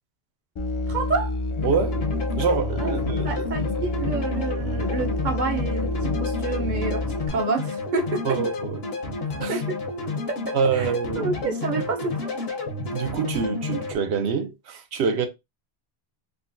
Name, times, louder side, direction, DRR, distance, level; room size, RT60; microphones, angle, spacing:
Musical instrument, 0.6-7.3, left 2 dB, 45° left, 0.4 m, -28 dB
voice 1, 0.9-1.3 2.8-2.9 3.2-8.3 9.4-9.8 10.5-10.9 11.2-12.4, right 4 dB, 55° right, 0.6 m, -29 dB
sound 1, 1.6-14.0, left 3 dB, 70° left, 1.0 m, -31 dB
voice 2, 1.6-2.0 2.4-3.4 8.2-8.8 9.4-9.6 10.5-11.4 11.8-11.9 12.9-15.3, right 6 dB, 90° right, 0.9 m, -26 dB
3.7 x 2.1 x 2.5 m
omnidirectional pair, 1.1 m